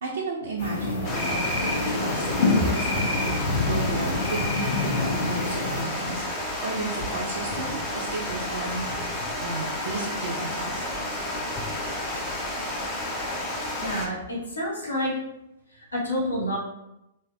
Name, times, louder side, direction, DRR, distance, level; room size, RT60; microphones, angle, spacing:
voice 1, 0.0-2.3 2.6-6.3 6.6-8.9 9.4-10.8, right 2 dB, 60° right, -4 dB, 0.5 m, -33 dB
sound 1, 0.6-5.8, left 2 dB, 50° left, 0.8 m, -26 dB
Water, 1.0-14.1, left 1 dB, 30° left, 0.6 m, -31 dB
voice 2, 13.8-15.1 15.7-16.6, equal, 70° left, -5 dB, 1.1 m, -29 dB
3.1 x 2.6 x 2.3 m, 0.87 s
figure-of-eight pair, 110°, 0 cm